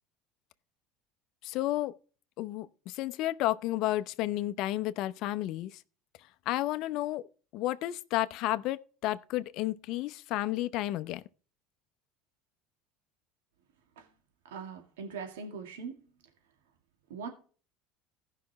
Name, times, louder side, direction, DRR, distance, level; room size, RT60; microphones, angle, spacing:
voice 1, 1.4-1.9 2.4-5.8 6.5-7.2 7.5-11.2, left 15 dB, 60° left, 0.7 m, -32 dB
voice 2, 14.5-16.0 17.1-17.3, right 5 dB, 85° right, 2.1 m, -41 dB
16.5 x 5.8 x 3.1 m
supercardioid pair, 90°, 0 cm